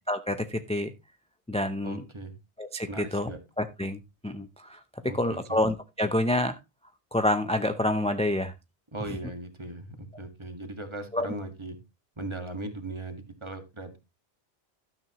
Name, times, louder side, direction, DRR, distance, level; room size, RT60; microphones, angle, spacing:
voice 1, 0.1-0.9 1.5-2.0 2.6-3.3 3.6-6.6 7.1-8.5 9.1-9.2 11.1-11.3, left 1 dB, 10° left, 8 dB, 0.4 m, -28 dB
voice 2, 1.8-2.3 2.9-3.4 5.0-5.6 8.9-11.8 12.2-14.0, right 2 dB, 25° right, 6 dB, 1.8 m, -38 dB
12.5 x 8.8 x 3.0 m, 0.25 s
omnidirectional pair, 1.1 m